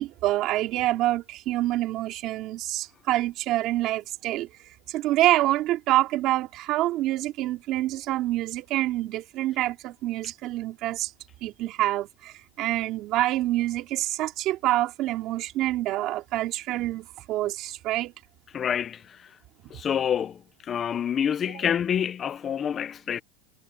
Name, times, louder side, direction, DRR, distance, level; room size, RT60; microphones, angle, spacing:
voice 1, 0.0-4.5 4.9-11.1 11.4-18.1 19.6-19.7 21.4-21.6, right 15 dB, 35° right, 2.8 m, -26 dB
voice 2, 18.5-19.2 19.7-20.4 20.7-23.2, left 8 dB, 20° left, 0.5 m, -27 dB
supercardioid pair, 165°, 0 cm